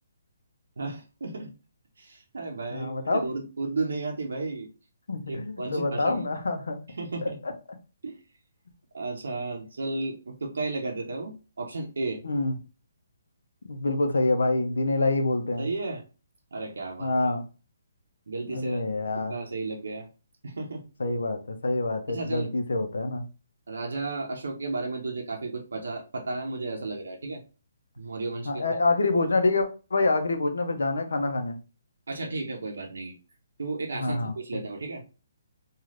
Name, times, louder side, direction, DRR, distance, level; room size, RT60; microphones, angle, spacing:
voice 1, 0.8-1.5 2.0-4.7 5.3-6.3 7.0-7.4 8.0-8.2 8.9-12.2 15.6-16.0 16.5-17.1 18.3-18.9 19.3-20.1 20.4-20.8 22.1-22.5 23.7-27.4 28.0-28.5 32.1-33.2 33.6-35.0, right 3 dB, 80° right, 0 dB, 0.6 m, -33 dB
voice 2, 2.7-3.2 5.1-6.8 7.2-7.5 12.2-12.6 13.7-15.7 17.0-17.4 18.5-19.3 21.0-23.3 28.4-31.6 33.9-34.3, left 2 dB, 85° left, 7 dB, 0.6 m, -26 dB
3.1 x 2.3 x 2.5 m, 0.33 s
hypercardioid pair, 155°, 0 cm